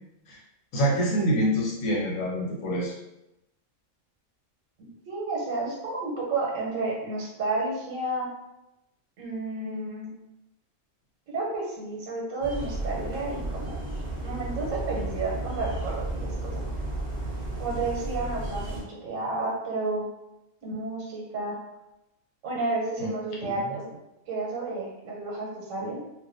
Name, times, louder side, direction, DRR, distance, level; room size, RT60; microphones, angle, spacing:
voice 1, 0.7-2.9 23.0-23.1 23.4-23.5, right 1 dB, 90° left, -4 dB, 1.0 m, -26 dB
voice 2, 5.1-8.3 9.2-10.1 11.3-13.8 14.2-16.7 17.6-20.0 20.6-21.6 22.4-23.8 24.3-26.0, right 3 dB, 85° right, -3 dB, 1.0 m, -31 dB
sound 1, 12.4-18.8, right 1 dB, 45° right, 0.4 m, -33 dB
2.4 x 2.1 x 2.5 m, 0.90 s
omnidirectional pair, 1.3 m